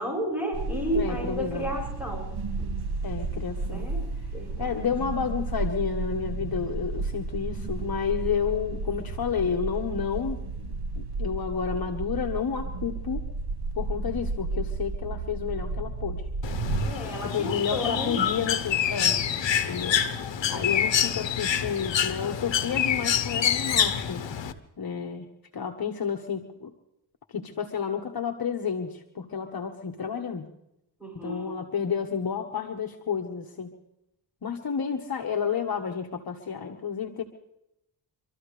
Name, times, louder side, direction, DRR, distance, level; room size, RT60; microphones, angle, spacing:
voice 1, 0.0-2.3 2.6-2.7 3.7-4.0 4.3-4.9 16.8-18.2 20.5-20.9 31.0-31.5, equal, 5° right, -2 dB, 7.1 m, -32 dB
sound 1, 0.5-16.9, right 3 dB, 60° right, 1.9 m, -32 dB
voice 2, 0.9-1.7 3.0-3.9 4.6-10.4 10.9-13.2 13.8-16.2 17.2-19.2 19.7-20.0 20.5-24.2 24.8-25.3 25.5-26.7 27.3-30.5 31.1-33.7 34.4-37.2, left 7 dB, 55° left, 3 dB, 1.4 m, -30 dB
Bird, 16.4-24.5, left 8 dB, 85° left, 1.1 m, -27 dB
26.0 x 14.0 x 3.3 m, 0.84 s
cardioid pair, 65°, 43 cm